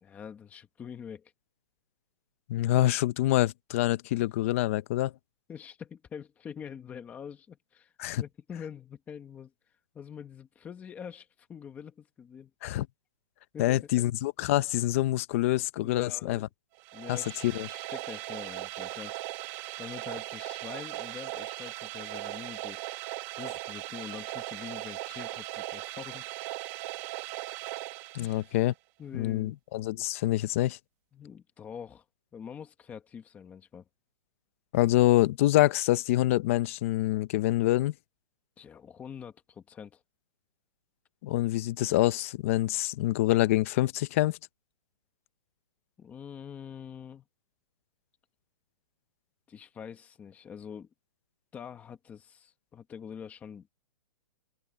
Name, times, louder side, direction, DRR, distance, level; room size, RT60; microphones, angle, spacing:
voice 1, 0.0-1.3 5.5-9.5 9.9-12.5 13.5-14.0 15.8-16.4 16.9-17.4 17.7-19.3 19.8-22.8 23.4-26.3 28.2-28.5 29.0-29.6 31.1-32.0 32.3-33.8 38.6-40.0 46.0-47.2 49.5-50.9 51.5-53.7, left 7 dB, 10° left, 1.1 m, -45 dB
voice 2, 2.5-5.1 8.0-8.2 12.6-12.9 13.6-16.5 17.1-17.7 28.1-28.7 29.1-30.8 34.7-37.9 41.2-44.4, left 15 dB, 25° left, 0.6 m, -26 dB
sound 1, 16.8-28.7, right 18 dB, 20° right, 1.5 m, -39 dB
open air
hypercardioid pair, 175°, 18 cm